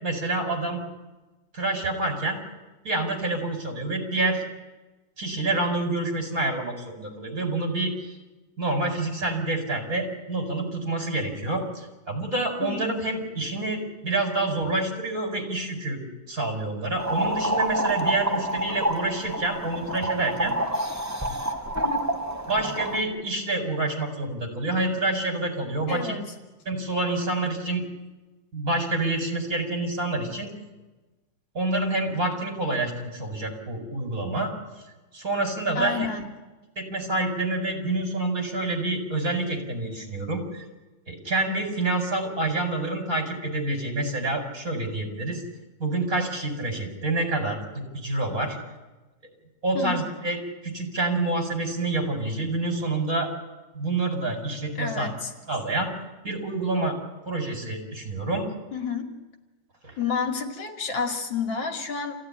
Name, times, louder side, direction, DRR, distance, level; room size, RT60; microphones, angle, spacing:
voice 1, 0.0-0.8 1.5-2.4 2.8-4.4 5.2-8.1 8.6-16.0 16.3-20.6 22.5-26.2 26.7-27.8 28.5-30.5 31.5-34.5 35.1-36.1 36.8-40.6 41.1-45.4 45.8-48.6 49.6-50.4 50.6-53.3 53.7-55.1 55.5-55.9 56.2-57.0 57.3-58.5 59.8-59.9, right 2 dB, 45° right, 4 dB, 5.4 m, -27 dB
sound 1, 17.0-23.0, right 1 dB, 10° right, 1.8 m, -28 dB
voice 2, 25.9-26.2 27.1-27.2 35.7-36.3 49.7-50.1 54.8-55.3 58.7-59.1 60.0-62.1, left 5 dB, 75° left, 4 dB, 3.0 m, -30 dB
28.0 x 16.0 x 10.0 m, 1.2 s
omnidirectional pair, 2.1 m